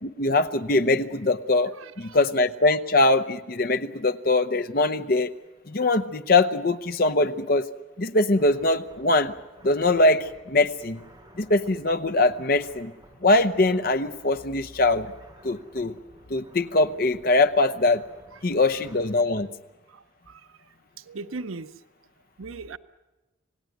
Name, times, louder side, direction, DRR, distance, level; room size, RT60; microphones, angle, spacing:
voice 1, 0.0-1.7 2.0-5.3 5.7-7.7 8.0-9.3 9.6-11.0 11.4-12.9 13.2-15.1 15.4-15.9 16.3-18.0 18.4-19.5, left 2 dB, 45° left, 11 dB, 0.8 m, -22 dB
voice 2, 1.7-2.2 18.3-18.8 19.3-19.6 20.3-20.4 21.1-21.7 22.4-22.8, right 3 dB, 90° right, 13 dB, 0.8 m, -39 dB
sound 1, 8.4-19.1, right 1 dB, 20° right, 4.7 m, -53 dB
27.0 x 18.0 x 9.3 m, 1.1 s
head